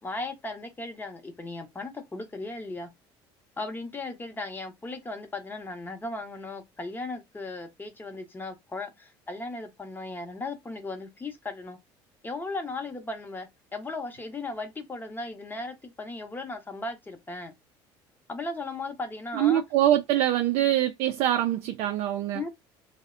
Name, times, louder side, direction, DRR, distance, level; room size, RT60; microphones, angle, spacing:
voice 1, 0.0-2.9 3.6-11.8 12.2-17.5 18.3-19.6 22.3-22.5, left 2 dB, 15° left, 0.7 m, -36 dB
voice 2, 19.3-22.5, right 12 dB, 70° right, 0.4 m, -24 dB
2.6 x 2.0 x 2.4 m
supercardioid pair, 105°, 11 cm